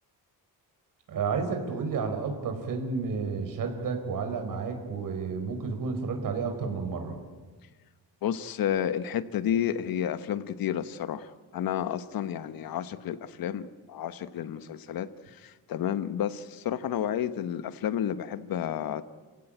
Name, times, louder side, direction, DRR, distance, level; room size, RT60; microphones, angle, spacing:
voice 1, 1.1-7.2, right 5 dB, 60° right, 5 dB, 4.8 m, -31 dB
voice 2, 8.2-19.0, left 10 dB, 65° left, 13 dB, 1.2 m, -31 dB
29.0 x 16.5 x 9.0 m, 1.3 s
cardioid pair, 135°, 38 cm